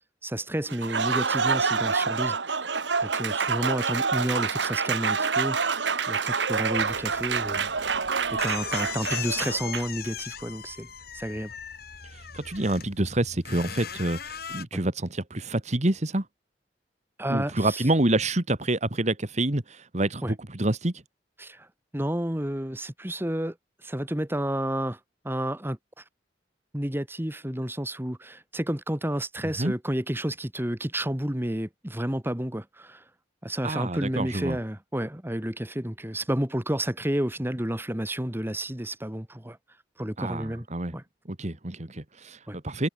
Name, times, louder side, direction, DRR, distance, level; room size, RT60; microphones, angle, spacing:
voice 1, 0.2-2.7 3.0-7.7 8.3-10.9 11.1-11.5 14.7-14.8 17.2-17.8 20.2-20.3 21.4-21.7 21.9-23.6 23.8-25.0 25.2-26.0 26.7-33.0 33.4-39.6 40.0-40.7 40.9-41.0 42.5-42.6, right 1 dB, 15° right, 2.0 m, -31 dB
Applause, 0.7-10.1, right 5 dB, 85° right, 1.7 m, -27 dB
sound 1, 6.8-14.6, left 8 dB, 60° left, 4.4 m, -39 dB
voice 2, 12.1-16.3 17.3-20.9 29.6-29.7 33.6-34.6 40.2-40.9 41.3-42.9, right 1 dB, 40° right, 1.9 m, -27 dB
head